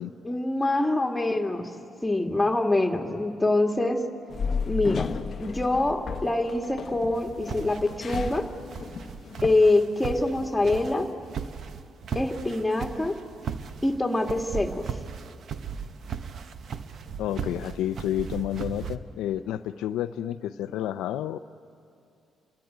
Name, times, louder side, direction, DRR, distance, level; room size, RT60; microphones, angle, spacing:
voice 1, 0.2-1.7 2.0-4.0 4.7-5.1 5.4-8.5 9.4-11.1 12.1-13.1 13.8-14.9, left 2 dB, 10° left, 3 dB, 2.2 m, -25 dB
sound 1, 4.3-9.5, left 6 dB, 50° left, 0.8 m, -34 dB
sound 2, 7.1-19.0, right 6 dB, 60° right, 1.0 m, -37 dB
voice 2, 17.2-21.4, left 11 dB, 85° left, 10 dB, 0.5 m, -30 dB
30.0 x 13.5 x 9.5 m, 2.4 s
cardioid pair, 75°, 0 cm